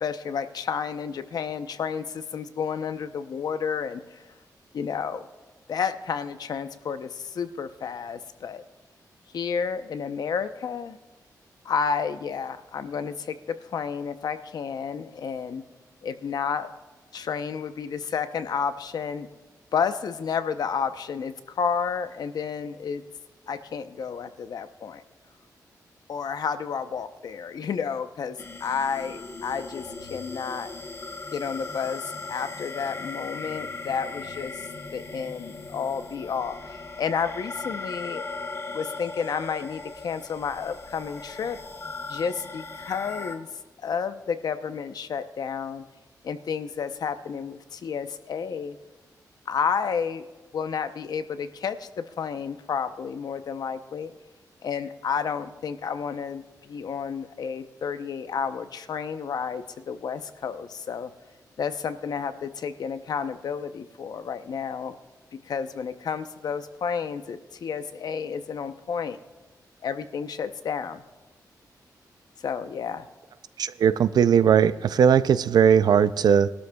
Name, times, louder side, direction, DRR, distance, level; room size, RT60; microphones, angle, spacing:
voice 1, 0.0-4.2 4.7-5.3 5.7-8.6 9.3-11.0 11.6-15.6 16.0-16.7 17.1-19.3 19.7-23.0 23.5-25.0 26.1-30.7 31.3-34.5 34.9-38.2 38.7-41.6 42.1-43.5 43.8-45.8 46.2-48.8 49.5-50.3 50.5-54.1 54.6-61.1 61.6-64.9 65.5-69.2 69.8-71.0 72.4-73.1, left 6 dB, 70° left, 10 dB, 0.8 m, -31 dB
sound 1, 28.4-43.4, left 3 dB, 40° left, 1.1 m, -38 dB
voice 2, 73.6-76.5, right 8 dB, 75° right, 14 dB, 0.5 m, -19 dB
22.0 x 12.5 x 2.3 m, 1.2 s
wide cardioid pair, 130°, 7 cm